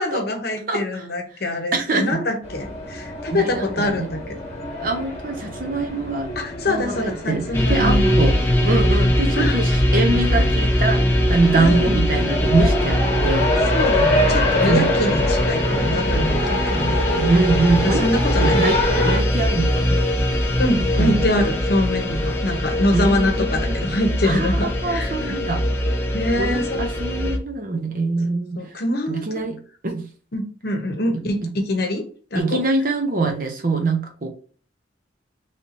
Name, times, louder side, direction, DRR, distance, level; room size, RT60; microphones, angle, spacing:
voice 1, 0.0-4.2 6.4-8.1 9.4-9.6 11.4-12.0 13.7-17.0 17.8-18.6 20.6-25.3 26.1-26.8 28.6-29.2 30.3-32.1 32.3-32.6, left 1 dB, 55° left, 4 dB, 0.9 m, -24 dB
voice 2, 1.7-2.2 3.3-4.1 4.8-6.3 6.7-8.4 8.6-11.0 11.3-13.5 14.6-14.9 17.1-18.1 18.4-18.8 19.0-20.0 21.0-21.2 22.9-23.8 24.2-25.6 26.4-28.6 29.1-29.6 29.8-30.0 31.4-31.5 32.3-34.3, right 3 dB, 50° right, 4 dB, 0.8 m, -23 dB
sound 1, 2.4-19.2, left 1 dB, 35° left, 1.1 m, -26 dB
sound 2, 7.5-27.4, left 1 dB, 10° left, 0.5 m, -21 dB
3.3 x 2.8 x 4.1 m, 0.41 s
head